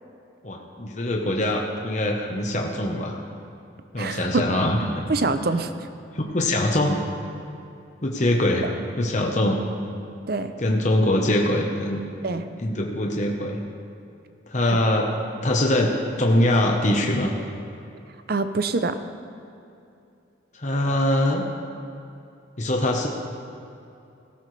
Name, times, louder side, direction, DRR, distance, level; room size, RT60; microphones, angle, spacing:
voice 1, 0.4-3.2 3.9-5.1 6.1-7.0 8.0-8.7 9.0-9.6 10.6-12.0 12.6-13.6 14.5-15.1 15.4-17.3 20.5-21.4 22.6-23.1, left 1 dB, 40° left, 1 dB, 1.0 m, -23 dB
voice 2, 4.0-4.4 5.1-5.7 10.3-10.5 12.2-12.4 14.7-14.8 18.3-19.0, right 3 dB, 50° right, 10 dB, 0.6 m, -24 dB
17.0 x 13.5 x 3.3 m, 2.6 s
head